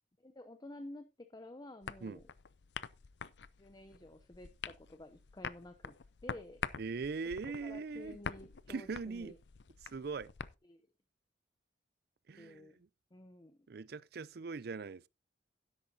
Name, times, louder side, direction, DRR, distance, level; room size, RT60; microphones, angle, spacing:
voice 1, 0.2-2.3 3.6-5.9 6.2-6.6 7.6-9.4 10.6-10.8 12.4-12.8 13.1-13.6, left 1 dB, 20° left, 0.6 m, -51 dB
sound 1, 1.8-10.5, left 6 dB, 70° left, 0.5 m, -46 dB
voice 2, 6.8-8.2 8.7-9.3 9.8-10.3 12.3-12.7 13.7-15.1, right 4 dB, 60° right, 0.5 m, -41 dB
12.5 x 10.5 x 2.7 m
head